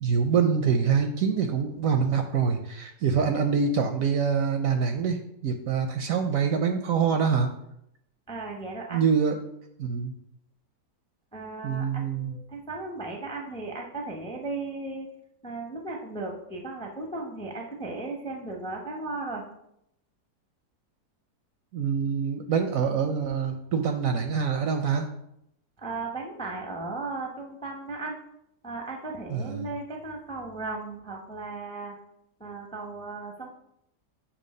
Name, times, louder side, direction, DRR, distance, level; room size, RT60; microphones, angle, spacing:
voice 1, 0.0-7.5 8.9-9.4 9.8-10.1 11.6-12.4 21.7-25.1 29.3-29.7, right 6 dB, 70° right, 6 dB, 0.8 m, -25 dB
voice 2, 8.3-9.1 11.3-15.1 15.4-19.4 25.8-28.2 28.6-31.9 32.4-33.5, right 3 dB, 5° left, 1 dB, 0.4 m, -36 dB
7.1 x 2.9 x 5.3 m, 0.79 s
omnidirectional pair, 1.8 m